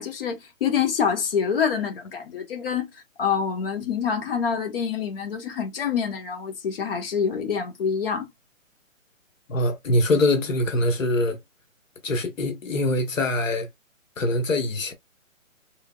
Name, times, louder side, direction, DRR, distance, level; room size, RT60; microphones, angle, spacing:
voice 1, 0.0-2.9 3.2-8.3, left 7 dB, 45° left, 1.2 m, -26 dB
voice 2, 9.5-11.4 12.0-13.7 14.2-14.9, left 1 dB, 70° left, 1.1 m, -23 dB
3.7 x 3.5 x 2.3 m
hypercardioid pair, 150°, 41 cm